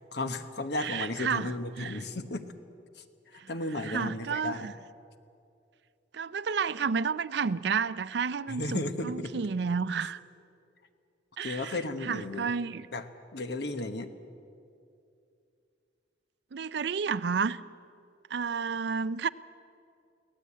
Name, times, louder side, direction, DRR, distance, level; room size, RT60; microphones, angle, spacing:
voice 1, 0.1-2.5 3.3-4.7 8.5-9.3 11.4-12.5 12.9-14.1, left 2 dB, 60° left, 8 dB, 1.2 m, -34 dB
voice 2, 0.8-2.0 3.4-3.5 3.8-4.7 6.1-10.2 11.4-12.9 16.5-17.6 18.3-19.3, right 5 dB, 60° right, 14 dB, 0.5 m, -31 dB
23.5 x 17.5 x 8.5 m, 2.5 s
head